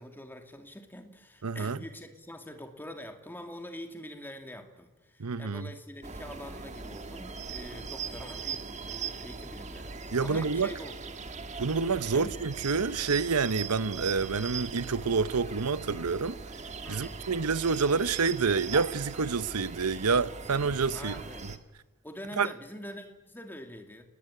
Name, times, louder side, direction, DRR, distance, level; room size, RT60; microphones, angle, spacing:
voice 1, 0.0-11.0 12.0-12.3 16.8-17.2 20.9-21.5 22.0-24.1, equal, 10° left, 2.5 m, -45 dB
voice 2, 1.4-1.8 5.2-5.7 10.1-10.7 11.6-16.4 16.9-21.2 22.4-22.5, right 5 dB, 85° right, 0.9 m, -28 dB
sound 1, 6.0-21.6, right 5 dB, 30° right, 1.4 m, -40 dB
29.0 x 20.0 x 9.9 m
head